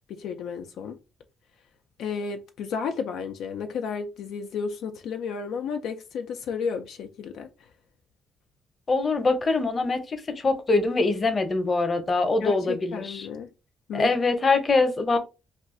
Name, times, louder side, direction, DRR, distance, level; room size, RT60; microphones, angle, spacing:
voice 1, 0.1-1.0 2.0-7.5 12.4-13.5 13.9-14.2, left 6 dB, 80° left, 0.4 m, -32 dB
voice 2, 8.9-13.3 13.9-15.2, left 3 dB, 35° left, 0.7 m, -23 dB
2.4 x 2.3 x 3.6 m
cardioid pair, 90°, 0 cm